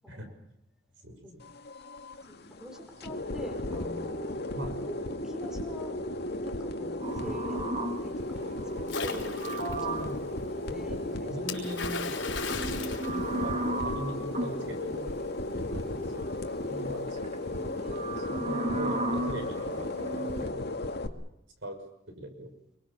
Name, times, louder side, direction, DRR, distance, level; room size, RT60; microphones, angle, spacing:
voice 1, 1.0-1.4 4.5-4.8 7.2-7.4 9.6-10.2 10.7-15.1 15.5-16.2 16.7-17.3 18.4-20.7 21.6-21.8 22.1-22.5, right 1 dB, 70° right, 6 dB, 6.2 m, -40 dB
sound 1, 1.4-21.1, left 2 dB, 55° left, 2.2 m, -35 dB
voice 2, 2.3-4.5 4.8-6.0 6.3-9.5 10.6-11.6 15.7-15.9 17.8-18.5, equal, 5° right, 4 dB, 4.7 m, -44 dB
sound 2, 7.0-10.3 12.4-14.6 16.0-16.6 17.1-20.5, right 2 dB, 35° right, 2.4 m, -35 dB
Splash splatter, 8.9-9.8 11.5-13.9, left 5 dB, 70° left, 4.6 m, -36 dB
27.0 x 23.5 x 7.2 m, 0.78 s
head